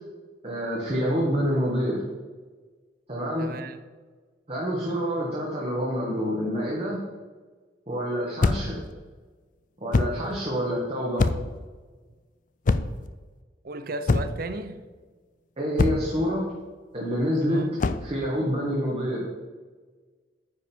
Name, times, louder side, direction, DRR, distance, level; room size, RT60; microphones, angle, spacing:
voice 1, 0.4-2.1 3.1-3.5 4.5-7.0 7.9-8.8 9.8-11.3 15.6-16.5 16.9-17.6 18.0-19.3, equal, 35° right, 1.5 m, -27 dB
voice 2, 3.4-3.8 13.6-14.8 17.5-17.8, right 2 dB, 55° right, 0.6 m, -35 dB
sound 1, 8.4-8.8 9.9-10.2 11.2-11.6 12.7-13.1 14.1-14.5 15.8-16.2 17.8-18.1, left 3 dB, 45° left, 0.4 m, -24 dB
9.4 x 5.3 x 4.5 m
head